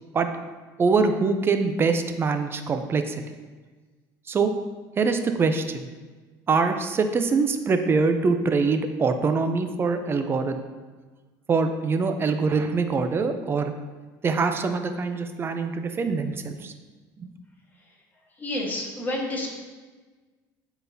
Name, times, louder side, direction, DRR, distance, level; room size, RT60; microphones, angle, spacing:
voice 1, 0.8-3.4 4.3-4.5 5.0-5.9 6.5-10.6 11.5-13.7 14.2-16.7 17.2-17.3, right 4 dB, 25° right, 7 dB, 0.5 m, -24 dB
voice 2, 18.4-19.5, left 1 dB, 20° left, -2 dB, 1.4 m, -29 dB
8.9 x 4.0 x 2.7 m, 1.3 s
cardioid pair, 120°, 9 cm